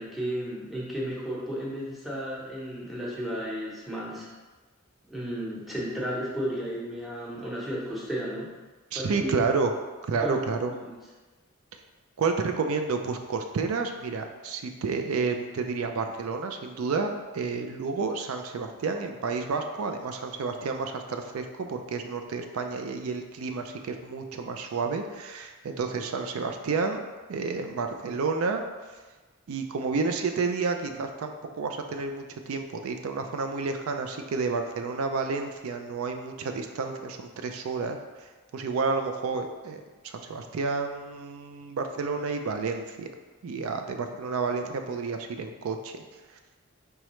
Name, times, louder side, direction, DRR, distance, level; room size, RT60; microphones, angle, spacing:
voice 1, 0.0-4.3 5.1-8.5 8.9-9.3 10.2-10.4 10.8-10.9, equal, ahead, -5 dB, 0.8 m, -33 dB
voice 2, 8.9-9.7 10.1-10.7 12.2-27.0 27.3-28.6 29.5-38.0 38.5-43.1 43.4-46.1, right 4 dB, 90° right, 5 dB, 0.4 m, -30 dB
4.6 x 3.1 x 3.0 m, 1.3 s
head